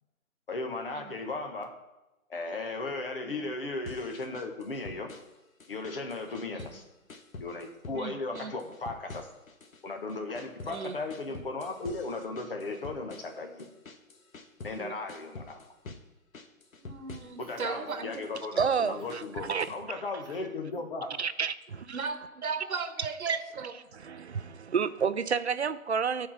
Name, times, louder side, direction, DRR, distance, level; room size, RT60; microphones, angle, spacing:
voice 1, 0.5-1.7 2.3-5.1 5.7-6.8 7.4-9.3 9.8-13.7 14.6-15.6 17.4-21.1, left 3 dB, 40° left, 4 dB, 1.3 m, -36 dB
sound 1, 3.9-5.4 5.6-6.8 7.1-8.0 8.4-9.8 10.1-14.8 15.1-16.1 16.3-17.7 18.1-19.8, left 3 dB, 70° left, 1.3 m, -46 dB
voice 2, 6.5-6.8 7.9-8.5 10.7-11.0 14.8-14.9 16.8-18.3 21.9-23.7, right 5 dB, 80° right, 8 dB, 1.1 m, -37 dB
Cough, 17.4-18.3 19.0-19.2 20.2-20.4 20.7-20.9, right 3 dB, 15° right, 1.2 m, -51 dB
voice 3, 18.6-19.7 21.2-22.0 23.3-23.4 23.9-26.3, right 6 dB, 50° right, 13 dB, 0.5 m, -30 dB
12.5 x 4.7 x 5.8 m, 0.99 s
hypercardioid pair, 175°, 42 cm